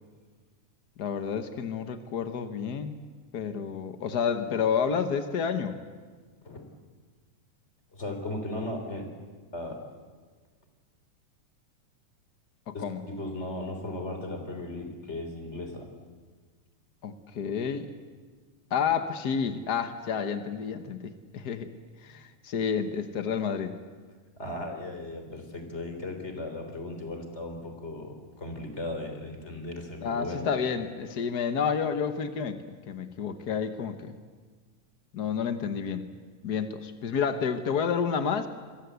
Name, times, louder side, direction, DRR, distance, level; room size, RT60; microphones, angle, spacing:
voice 1, 1.0-2.9 3.3-5.8 12.7-13.0 17.0-17.9 18.7-21.7 22.0-23.8 30.0-34.2 35.1-36.1 36.4-38.5, left 6 dB, 85° left, 9 dB, 0.8 m, -30 dB
voice 2, 7.9-9.1 9.5-9.8 12.7-15.9 24.4-30.5, left 2 dB, 20° left, 5 dB, 3.7 m, -36 dB
27.5 x 22.0 x 8.2 m, 1.5 s
omnidirectional pair, 3.6 m